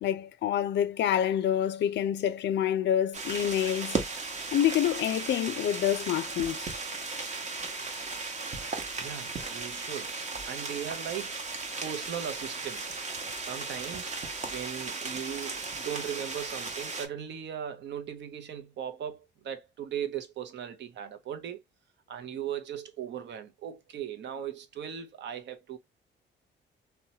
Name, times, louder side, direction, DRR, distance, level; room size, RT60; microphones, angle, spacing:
voice 1, 0.0-4.0 4.5-6.8, left 10 dB, 65° left, 0.4 m, -27 dB
sound 1, 3.1-17.1, right 3 dB, 35° right, 0.8 m, -36 dB
voice 2, 9.0-10.1 10.5-11.4 11.8-12.9 13.4-14.1 14.4-21.6 22.1-25.8, right 9 dB, 70° right, 0.7 m, -38 dB
2.8 x 2.2 x 2.7 m
cardioid pair, 85°, 19 cm